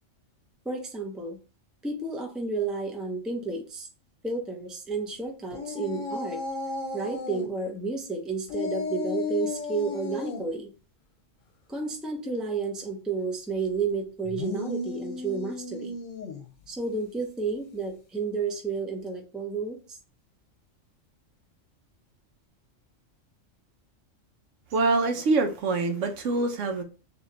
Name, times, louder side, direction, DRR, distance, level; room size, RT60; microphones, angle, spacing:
voice 1, 0.6-1.4 1.8-3.9 4.2-6.4 6.9-10.7 11.7-16.0 16.7-20.0, right 4 dB, ahead, 0.5 m, -31 dB
sound 1, 5.5-7.5 8.5-10.4 14.2-16.5, left 3 dB, 80° left, 1.2 m, -34 dB
voice 2, 24.7-26.8, right 3 dB, 75° right, 1.1 m, -25 dB
3.6 x 3.0 x 3.8 m
omnidirectional pair, 1.3 m